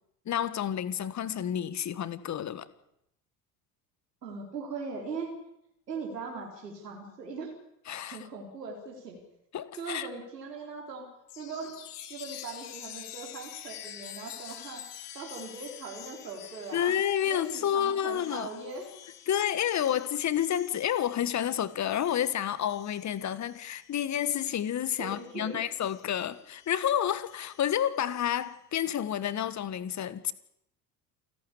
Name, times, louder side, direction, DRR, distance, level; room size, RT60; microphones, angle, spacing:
voice 1, 0.2-2.7 7.9-8.2 9.5-10.1 16.7-18.5 19.3-30.3, left 10 dB, 35° left, 1.6 m, -30 dB
voice 2, 4.2-5.3 5.9-7.5 8.1-9.2 9.8-11.1 11.4-11.7 12.1-14.8 15.1-17.0 17.2-18.9 25.0-25.6, right 4 dB, 85° right, 4.3 m, -40 dB
Chime, 11.3-25.3 25.7-28.6, left 11 dB, 70° left, 2.6 m, -48 dB
28.5 x 12.0 x 10.0 m
figure-of-eight pair, 65°, 47 cm